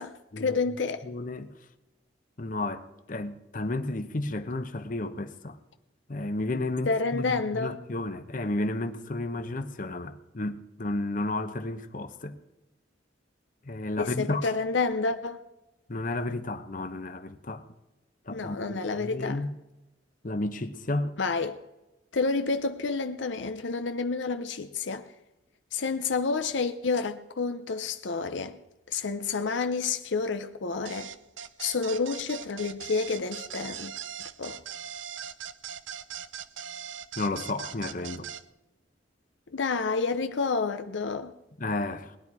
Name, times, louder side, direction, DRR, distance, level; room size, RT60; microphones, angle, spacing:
voice 1, 0.0-1.0 6.9-7.8 14.0-15.4 18.3-19.4 21.2-21.6 22.1-25.1 25.7-28.6 28.9-31.1 31.6-33.9 34.4-34.6 39.5-41.3, left 4 dB, 80° left, 0.7 m, -29 dB
voice 2, 1.0-1.5 2.4-5.6 6.1-12.4 13.6-14.4 15.9-17.6 18.3-19.5 20.2-21.2 37.2-38.3 41.6-42.2, left 2 dB, 45° left, 0.9 m, -32 dB
sound 1, 30.9-38.4, right 8 dB, 85° right, 0.6 m, -40 dB
19.5 x 10.5 x 4.8 m
head